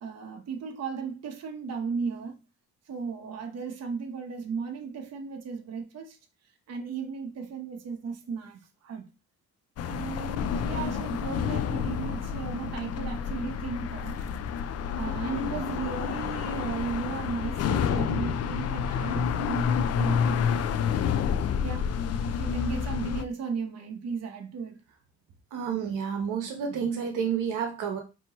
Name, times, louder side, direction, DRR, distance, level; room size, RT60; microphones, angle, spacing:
voice 1, 0.0-2.4 2.9-6.2 6.7-9.1 9.8-14.3 14.9-20.7 21.6-21.9 22.2-24.8, right 5 dB, 55° right, 1.0 m, -35 dB
sound 1, 9.8-23.2, left 7 dB, 55° left, 0.5 m, -29 dB
voice 2, 25.5-28.0, right 7 dB, 85° right, 1.0 m, -30 dB
5.2 x 2.9 x 3.0 m
cardioid pair, 90°, 30 cm